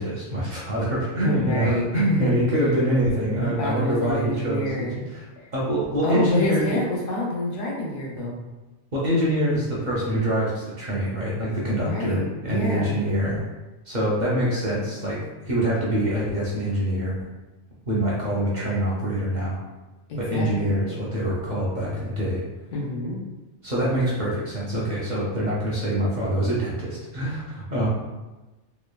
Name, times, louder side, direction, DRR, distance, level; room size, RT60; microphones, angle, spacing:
voice 1, 0.0-5.2 5.5-6.8 8.9-13.4 13.9-17.2 17.9-19.6 20.2-22.4 23.6-27.9, right 1 dB, 55° right, -5 dB, 0.5 m, -25 dB
voice 2, 1.2-2.3 3.3-5.1 5.4-5.5 6.0-8.4 11.8-13.0 20.1-20.7 22.7-23.2, left 1 dB, 90° left, -3 dB, 1.1 m, -28 dB
3.1 x 2.1 x 2.2 m, 1.1 s
omnidirectional pair, 1.2 m